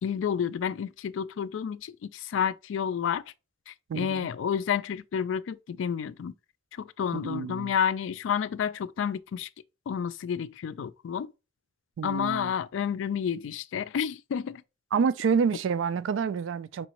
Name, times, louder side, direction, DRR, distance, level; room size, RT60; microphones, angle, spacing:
voice 1, 0.0-3.2 3.7-6.3 6.8-9.5 9.9-11.3 12.0-14.6, left 8 dB, 85° left, 0.3 m, -30 dB
voice 2, 3.9-4.3 7.1-7.7 12.0-12.5 14.9-16.9, right 6 dB, 90° right, 0.3 m, -28 dB
4.6 x 3.0 x 2.9 m
head